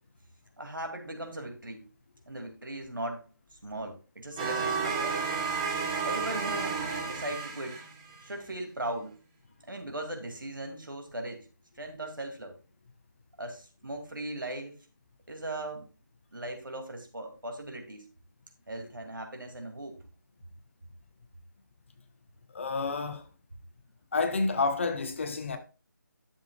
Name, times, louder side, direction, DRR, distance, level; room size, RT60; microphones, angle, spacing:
voice 1, 0.6-1.9 2.3-3.2 3.6-5.2 6.0-7.8 8.2-9.2 9.7-11.5 11.8-12.6 13.4-14.8 15.3-15.9 16.3-18.0 18.7-20.0, right 1 dB, 70° right, 2.3 m, -38 dB
sound 1, 4.4-8.3, right 5 dB, 15° right, 1.0 m, -32 dB
voice 2, 22.5-23.2 24.1-25.6, left 4 dB, 35° left, 0.9 m, -29 dB
11.5 x 7.2 x 2.3 m
figure-of-eight pair, 155°, 11 cm